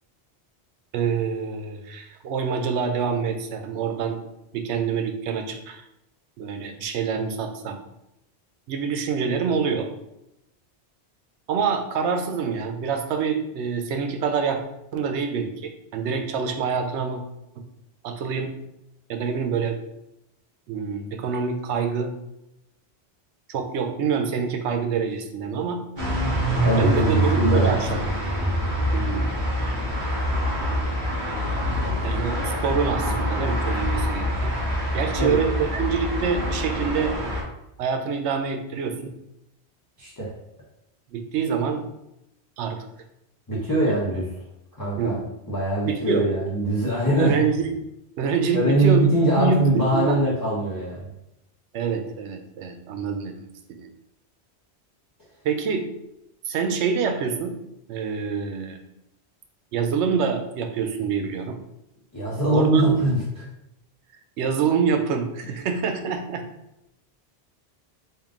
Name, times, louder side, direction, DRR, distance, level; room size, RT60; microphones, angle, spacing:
voice 1, 0.9-4.2 4.5-5.8 6.4-7.8 8.7-9.9 11.5-14.6 14.9-17.2 17.6-17.7 18.0-18.5 19.1-19.8 20.7-22.1 23.5-25.8 26.8-28.0 28.9-29.3 32.0-34.6 34.9-37.1 37.8-39.1 41.1-41.8 42.6-42.9 43.8-44.0 45.0-45.2 45.8-46.3 47.2-47.8 48.2-49.1 49.4-50.2 51.7-53.4 53.7-53.9 55.4-55.9 56.5-57.6 57.9-58.8 59.7-61.6 62.5-63.0 64.4-66.4, right 6 dB, 85° right, 5 dB, 0.9 m, -26 dB
sound 1, 26.0-37.4, equal, 45° right, 1.2 m, -25 dB
voice 2, 26.6-27.8 31.8-31.9 35.2-35.4 40.0-40.3 43.5-44.3 44.8-45.1 45.5-47.4 48.5-51.1 62.1-63.2, right 1 dB, 20° left, -7 dB, 0.7 m, -22 dB
3.6 x 2.5 x 3.6 m, 0.84 s
omnidirectional pair, 1.1 m